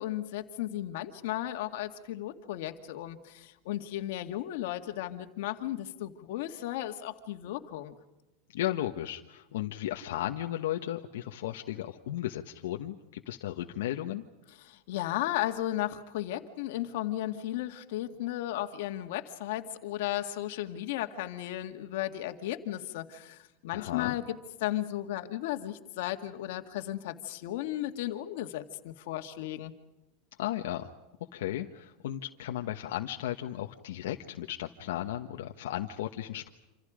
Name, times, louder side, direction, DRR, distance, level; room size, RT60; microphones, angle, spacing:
voice 1, 0.0-8.0 14.6-29.7, left 14 dB, 60° left, 6 dB, 2.1 m, -35 dB
voice 2, 8.5-14.2 23.7-24.1 30.4-30.9 31.3-36.5, left 13 dB, 80° left, 3 dB, 1.3 m, -35 dB
27.5 x 27.5 x 5.1 m, 0.98 s
supercardioid pair, 175°, 0 cm